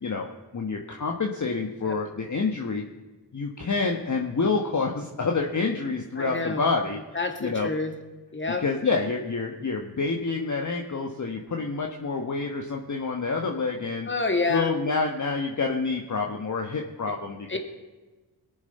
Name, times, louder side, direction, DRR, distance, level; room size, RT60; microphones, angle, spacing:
voice 1, 0.0-2.8 3.3-7.0 7.4-7.7 8.5-14.1 14.5-17.6, left 4 dB, 45° left, 2 dB, 1.4 m, -28 dB
voice 2, 6.2-6.6 7.1-7.9 8.3-8.6 14.1-14.7 17.5-17.6, left 3 dB, 30° left, 5 dB, 2.2 m, -28 dB
21.5 x 7.3 x 5.6 m, 1.2 s
cardioid pair, 60°, 41 cm